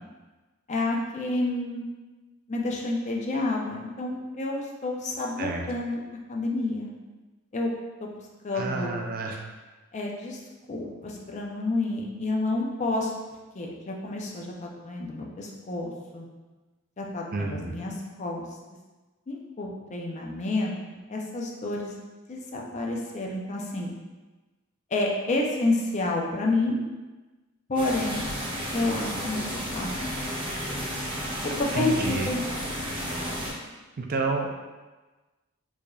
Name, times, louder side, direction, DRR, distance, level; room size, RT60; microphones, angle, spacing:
voice 1, 0.7-1.8 2.5-5.9 6.3-6.9 7.5-7.7 8.0-8.1 8.4-8.9 9.9-10.4 10.7-13.1 13.5-16.3 17.0-17.9 18.2-18.4 19.3-20.7 21.1-21.9 22.3-23.9 24.9-26.8 27.7-28.3 28.7-29.9 31.6-32.4, left 2 dB, 35° left, -1 dB, 0.5 m, -29 dB
voice 2, 8.5-9.4 17.3-17.8 31.7-32.6 34.0-34.5, right 3 dB, 45° right, 2 dB, 0.4 m, -30 dB
sound 1, 27.7-33.5, equal, 20° right, 1.2 m, -32 dB
4.7 x 2.7 x 2.3 m, 1.2 s
head